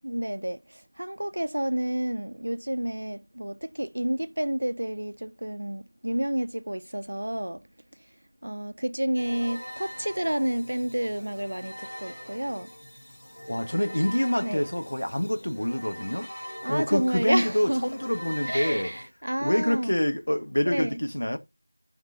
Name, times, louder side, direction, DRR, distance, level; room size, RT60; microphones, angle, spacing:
voice 1, 0.0-7.6 8.4-12.7 14.4-14.7 16.6-17.9 18.5-19.9 20.6-21.0, right 1 dB, 65° right, 0.5 m, -30 dB
sound 1, 9.2-19.1, equal, 40° left, 4.4 m, -42 dB
voice 2, 13.5-16.3 16.7-18.9 19.4-21.4, equal, 75° left, 1.3 m, -26 dB
16.0 x 5.9 x 2.8 m
figure-of-eight pair, 175°, 0 cm